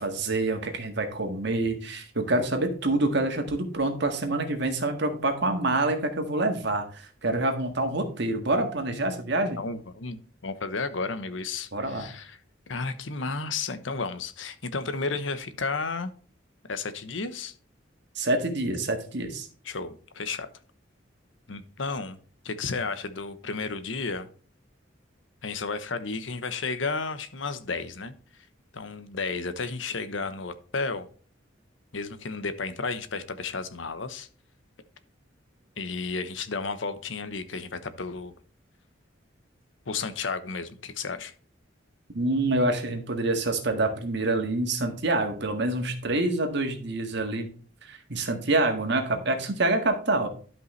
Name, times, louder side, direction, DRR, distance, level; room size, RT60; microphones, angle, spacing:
voice 1, 0.0-9.6 11.7-12.1 18.2-19.5 42.1-47.5 47.8-50.3, right 2 dB, 65° right, 5 dB, 1.7 m, -26 dB
voice 2, 9.6-12.4 12.7-16.1 16.7-17.5 19.6-20.5 21.5-22.2 22.4-24.3 25.4-28.1 28.7-31.1 31.9-34.3 35.8-38.3 39.9-41.3, left 4 dB, 80° left, 11 dB, 1.0 m, -32 dB
12.0 x 5.4 x 3.2 m, 0.42 s
head